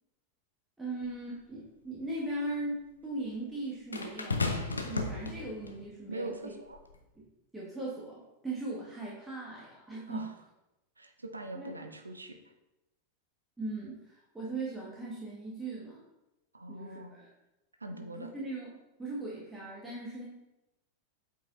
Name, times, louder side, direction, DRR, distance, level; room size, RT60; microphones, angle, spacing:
voice 1, 0.8-4.5 4.8-6.5 7.5-10.3 11.5-11.7 13.6-16.0 16.7-17.3 17.9-18.7 19.0-20.2, right 2 dB, 10° right, -6 dB, 1.3 m, -39 dB
sound 1, 1.0-1.1 3.9-5.8 6.7-6.9, left 3 dB, 80° left, 0.6 m, -34 dB
voice 2, 6.1-6.8 10.1-10.3 11.0-12.4 16.5-17.2 17.8-18.3, right 2 dB, 80° right, 6 dB, 0.6 m, -42 dB
8.1 x 4.7 x 2.5 m, 0.95 s
figure-of-eight pair, 90°, 0 cm